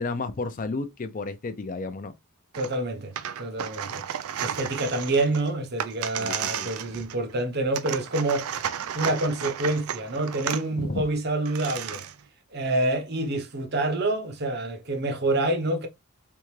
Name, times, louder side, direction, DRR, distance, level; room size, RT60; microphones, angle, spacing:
voice 1, 0.0-2.1 6.2-6.7 10.8-11.0, left 3 dB, 40° left, 0.4 m, -32 dB
voice 2, 2.5-4.0 4.4-8.5 8.9-12.1 12.5-15.9, right 2 dB, 50° right, 0.8 m, -27 dB
sound 1, 2.5-2.8 3.1-7.3 7.7-10.6 11.2-11.3 11.4-12.2, right 9 dB, 85° right, 0.4 m, -33 dB
3.7 x 3.5 x 3.1 m
head